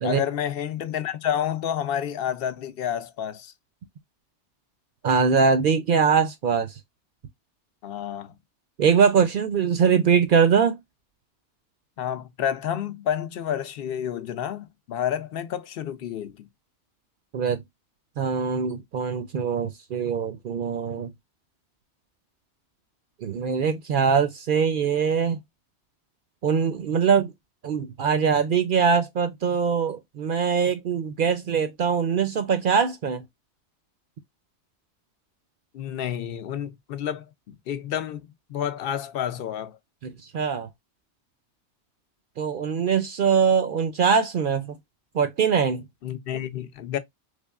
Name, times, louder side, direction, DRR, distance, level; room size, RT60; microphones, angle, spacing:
voice 1, 0.0-3.5 7.8-8.4 12.0-16.5 35.7-39.8 46.0-47.0, left 9 dB, 65° left, 0.7 m, -30 dB
voice 2, 5.0-6.7 8.8-10.8 17.3-17.6 18.2-21.1 23.2-25.4 26.4-27.3 27.6-33.2 40.0-40.7 42.4-44.8 45.1-45.9, right 6 dB, 60° right, 0.6 m, -22 dB
3.5 x 3.4 x 2.2 m
omnidirectional pair, 1.2 m